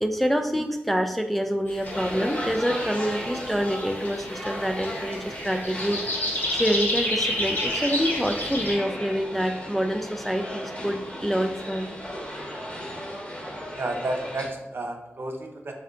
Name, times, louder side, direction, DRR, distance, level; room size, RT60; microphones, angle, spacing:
voice 1, 0.0-11.9, equal, 5° left, 5 dB, 0.3 m, -27 dB
sound 1, 1.7-8.7, left 1 dB, 50° left, 1.4 m, -31 dB
sound 2, 1.8-14.5, equal, 25° left, 1.0 m, -36 dB
voice 2, 13.7-15.7, right 2 dB, 55° right, 3 dB, 0.6 m, -31 dB
3.6 x 2.1 x 3.7 m, 0.93 s
cardioid pair, 40°, 5 cm